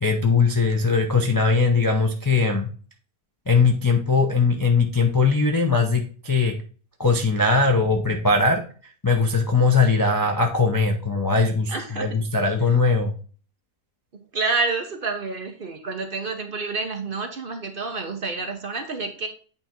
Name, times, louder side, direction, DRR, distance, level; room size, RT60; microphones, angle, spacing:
voice 1, 0.0-2.7 3.5-6.5 7.0-8.6 9.0-13.1, left 4 dB, 25° left, 1 dB, 0.5 m, -20 dB
voice 2, 11.7-12.1 14.3-19.3, right 4 dB, 45° right, 5 dB, 1.0 m, -28 dB
8.7 x 3.4 x 4.4 m, 0.41 s
omnidirectional pair, 1.5 m